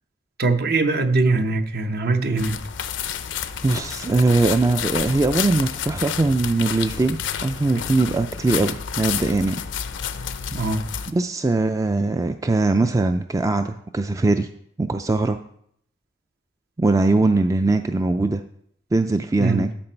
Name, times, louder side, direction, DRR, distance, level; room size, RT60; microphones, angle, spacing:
voice 1, 0.4-2.6 10.5-10.9 19.4-19.7, right 3 dB, 55° right, 0.8 m, -21 dB
sound 1, 2.4-11.1, left 8 dB, 80° left, 0.5 m, -30 dB
voice 2, 3.6-9.6 11.1-14.5 14.8-15.4 16.8-18.4 18.9-19.7, right 2 dB, 20° right, 0.3 m, -21 dB
12.0 x 5.2 x 4.4 m
head